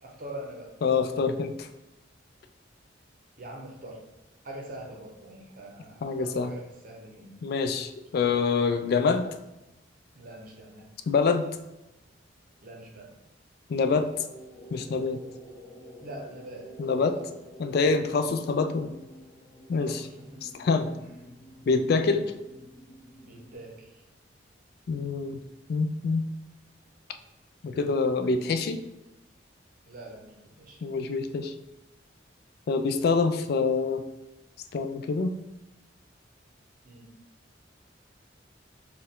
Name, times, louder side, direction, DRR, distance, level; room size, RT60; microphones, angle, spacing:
voice 1, 0.0-0.7 3.4-4.0 4.4-7.4 10.1-10.9 12.6-13.1 16.0-16.7 17.1-17.3 18.1-18.3 19.7-20.4 21.0-21.1 23.2-24.0 29.8-30.8 36.8-37.1, right 1 dB, 50° right, 0 dB, 0.7 m, -44 dB
voice 2, 0.8-1.7 6.0-6.5 7.4-9.3 11.1-11.5 13.7-14.1 14.7-15.2 16.8-17.2 17.6-18.9 19.7-20.0 20.6-20.9 21.7-22.3 24.9-25.4 25.7-26.2 27.6-28.8 30.8-31.5 32.7-34.0 34.7-35.3, left 4 dB, 55° left, 7 dB, 0.3 m, -25 dB
sound 1, 14.1-23.5, equal, 15° left, 1.1 m, -49 dB
4.3 x 2.3 x 3.6 m, 0.96 s
head